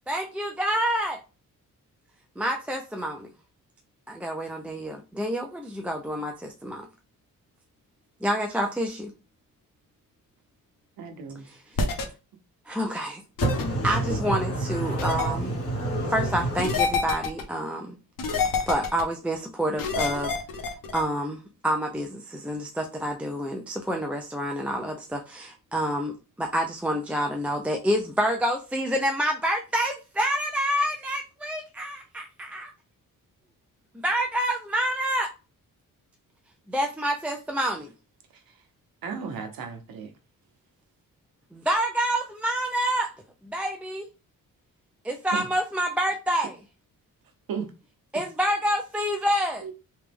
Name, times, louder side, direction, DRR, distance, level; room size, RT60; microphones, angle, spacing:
voice 1, 0.1-1.2 2.4-3.3 4.1-6.8 8.2-9.1 11.4-11.6 12.7-13.2 13.8-15.5 16.1-18.0 18.7-20.3 20.9-32.2 32.5-32.7 34.0-35.3 36.7-37.9 41.5-43.1 43.4-44.1 45.0-46.6 48.1-49.6, equal, 5° right, 0.3 m, -28 dB
voice 2, 11.0-11.5 39.0-40.1 45.3-45.5 47.5-47.7 49.6-49.7, right 6 dB, 85° right, 0.9 m, -34 dB
sound 1, 11.8-12.0 13.4-13.6 15.0-15.3 16.6-17.4 18.2-19.0 19.8-21.0, left 5 dB, 70° left, 0.9 m, -27 dB
voice 3, 13.4-16.7, right 1 dB, 40° left, 2.0 m, -28 dB
3.3 x 3.0 x 3.4 m
wide cardioid pair, 155°, 35 cm